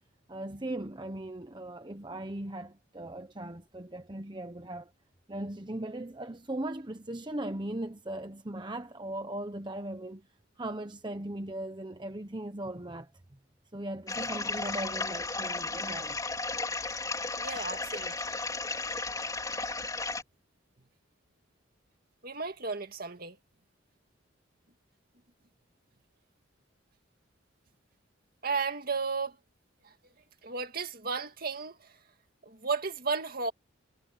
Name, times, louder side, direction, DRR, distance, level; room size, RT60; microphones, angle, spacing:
voice 1, 0.3-4.9 5.3-10.3 10.6-13.1 13.7-16.2, right 1 dB, 25° right, 1.0 m, -38 dB
sound 1, 14.1-20.2, left 3 dB, 20° left, 4.1 m, -34 dB
voice 2, 17.4-18.1 22.2-23.4 28.4-29.4 30.4-31.9 32.4-33.5, right 4 dB, 50° right, 2.2 m, -33 dB
head